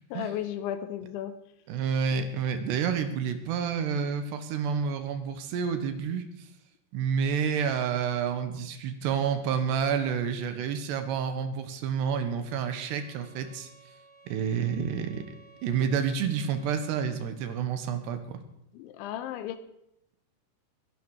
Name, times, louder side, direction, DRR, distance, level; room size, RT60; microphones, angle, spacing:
voice 1, 0.1-1.3 18.7-19.6, left 11 dB, 90° left, 11 dB, 3.4 m, -34 dB
voice 2, 1.7-6.5 6.9-13.7 14.3-15.3 15.6-18.4, right 7 dB, 75° right, 8 dB, 3.3 m, -29 dB
sound 1, 12.4-17.2, right 1 dB, 50° left, 4.5 m, -57 dB
21.0 x 11.5 x 4.9 m, 0.81 s
omnidirectional pair, 5.2 m